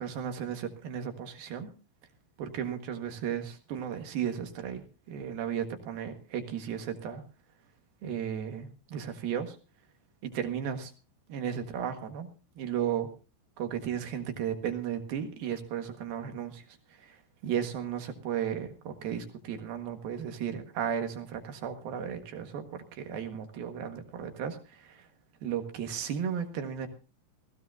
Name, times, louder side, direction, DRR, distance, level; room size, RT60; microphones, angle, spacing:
voice 1, 0.0-1.7 2.4-7.2 8.0-9.6 10.2-10.9 11.3-12.3 12.6-13.1 13.6-16.6 17.0-25.1 25.4-26.9, right 8 dB, 60° right, 6 dB, 2.8 m, -35 dB
19.5 x 15.5 x 2.7 m, 0.33 s
omnidirectional pair, 5.9 m